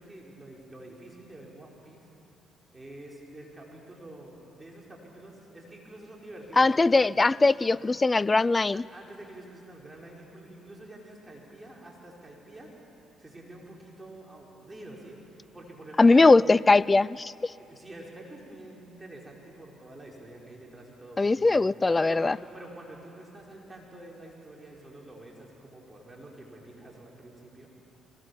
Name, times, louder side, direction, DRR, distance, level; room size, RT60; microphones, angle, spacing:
voice 1, 0.0-2.1 2.7-6.9 8.7-12.7 13.2-16.3 17.7-21.5 22.0-27.7, right 1 dB, 20° right, -2 dB, 5.1 m, -47 dB
voice 2, 6.6-8.8 16.0-17.5 21.2-22.4, left 3 dB, 25° left, 22 dB, 0.4 m, -21 dB
23.0 x 19.0 x 7.2 m, 2.8 s
hypercardioid pair, 50°, 0 cm